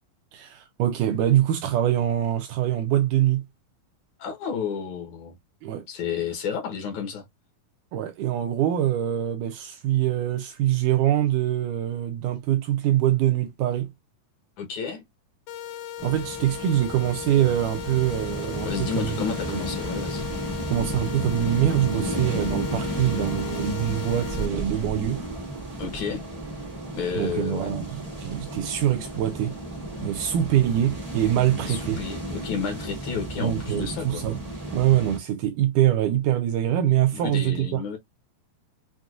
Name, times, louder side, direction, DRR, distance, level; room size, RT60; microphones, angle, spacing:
voice 1, 0.3-3.4 5.6-5.8 7.9-13.9 16.0-19.1 19.5-19.6 20.7-25.2 27.2-29.6 30.0-32.0 33.4-34.4 34.7-38.0, right 12 dB, 80° right, 1.9 m, -24 dB
voice 2, 4.2-5.4 5.9-7.3 14.6-15.0 18.6-20.3 25.8-26.2 26.9-27.8 31.6-34.2 37.1-38.0, left 6 dB, 65° left, 2.1 m, -31 dB
sound 1, 15.5-24.5, left 10 dB, 80° left, 1.9 m, -37 dB
sound 2, 16.0-35.2, right 1 dB, 60° right, 0.3 m, -33 dB
6.1 x 2.5 x 2.4 m
omnidirectional pair, 4.2 m